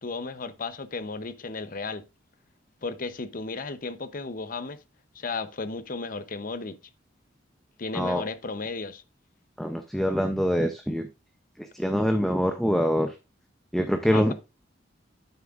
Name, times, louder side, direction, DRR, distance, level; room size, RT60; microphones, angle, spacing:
voice 1, 0.0-2.0 2.8-4.8 5.1-6.8 7.8-9.0 14.1-14.3, left 3 dB, 50° left, 0.8 m, -34 dB
voice 2, 9.6-11.1 11.7-13.1 13.7-14.3, equal, ahead, 0.6 m, -24 dB
9.5 x 7.4 x 2.5 m
head